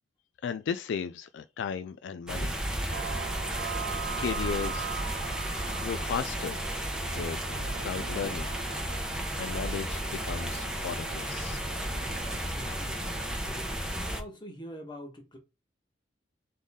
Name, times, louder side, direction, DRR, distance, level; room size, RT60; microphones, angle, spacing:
voice 1, 0.4-2.6 4.2-4.9 5.8-6.7 7.1-8.5 9.1-11.6, left 6 dB, 75° left, 0.3 m, -35 dB
sound 1, 2.3-14.2, right 1 dB, 5° right, 0.9 m, -33 dB
sound 2, 2.9-12.4, right 8 dB, 65° right, 0.4 m, -41 dB
voice 2, 12.5-15.4, equal, 25° left, 1.4 m, -45 dB
3.8 x 3.6 x 3.6 m
head